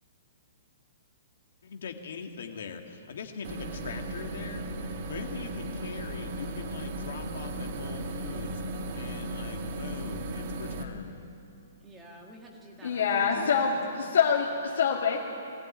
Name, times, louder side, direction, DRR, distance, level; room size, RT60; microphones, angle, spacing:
voice 1, 1.6-8.6 8.9-11.2, left 6 dB, 60° left, 4 dB, 2.2 m, -42 dB
sound 1, 3.4-10.8, right 1 dB, 40° right, 1.7 m, -36 dB
voice 2, 11.8-13.3 13.6-14.3, right 1 dB, 10° right, -1 dB, 1.9 m, -50 dB
voice 3, 12.8-15.2, left 6 dB, 85° left, -4 dB, 2.5 m, -25 dB
21.0 x 16.0 x 9.2 m, 2.6 s
hypercardioid pair, 175°, 0 cm